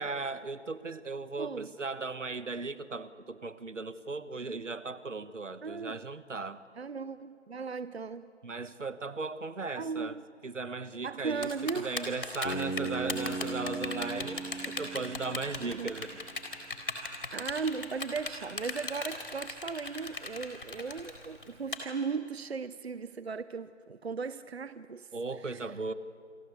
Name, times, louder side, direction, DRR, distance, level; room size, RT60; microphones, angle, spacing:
voice 1, 0.0-6.6 8.4-10.2 10.4-16.2 25.1-25.9, right 3 dB, 90° right, 14 dB, 1.4 m, -37 dB
voice 2, 1.4-1.7 4.4-4.6 5.6-6.0 6.8-8.3 9.8-10.2 11.0-11.9 15.6-15.9 17.3-25.1 25.5-25.6, right 5 dB, 60° right, 15 dB, 0.8 m, -37 dB
Typing, 11.4-21.8, left 3 dB, 50° left, 4.0 m, -37 dB
Bass guitar, 12.4-16.4, right 3 dB, 75° left, 3.7 m, -38 dB
28.0 x 23.5 x 8.3 m, 2.3 s
figure-of-eight pair, 170°, 36 cm